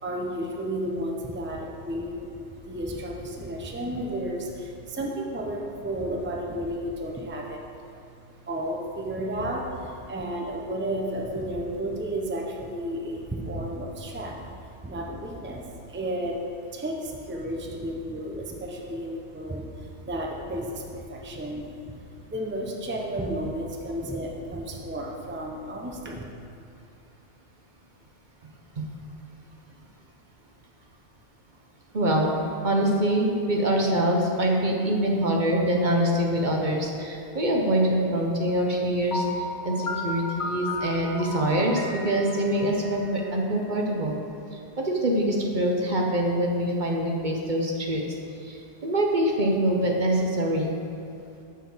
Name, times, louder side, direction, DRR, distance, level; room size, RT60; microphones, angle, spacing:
voice 1, 0.0-8.0 8.4-16.4 16.7-26.2, right 1 dB, 10° right, -1 dB, 0.7 m, -33 dB
voice 2, 31.9-32.3 32.6-44.1 44.8-48.0 48.4-50.7, right 1 dB, 45° right, 0 dB, 1.0 m, -24 dB
Piano, 39.1-44.0, left 2 dB, 45° left, 1.3 m, -34 dB
9.7 x 4.7 x 7.1 m, 2.6 s
omnidirectional pair, 1.2 m